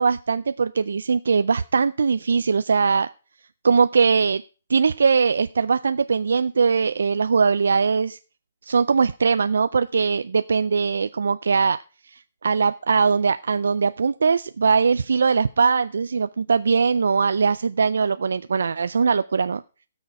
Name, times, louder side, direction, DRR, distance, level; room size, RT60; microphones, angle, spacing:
voice 1, 0.0-3.1 3.6-4.4 4.7-8.2 8.6-11.8 12.4-19.6, right 5 dB, 85° right, 12 dB, 0.4 m, -21 dB
17.0 x 6.4 x 4.7 m, 0.35 s
hypercardioid pair, 180°, 0 cm